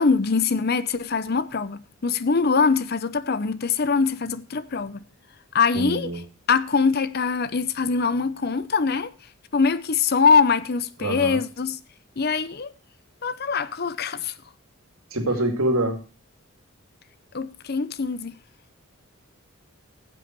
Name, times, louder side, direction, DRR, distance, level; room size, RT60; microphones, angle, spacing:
voice 1, 0.0-5.0 5.5-6.1 6.5-9.1 9.5-11.8 12.2-12.7 13.2-14.3 17.3-18.4, left 5 dB, 45° left, 0.6 m, -23 dB
voice 2, 5.7-6.2 11.0-11.4 15.1-16.0, right 1 dB, 75° right, 2.4 m, -25 dB
15.5 x 7.7 x 4.5 m
head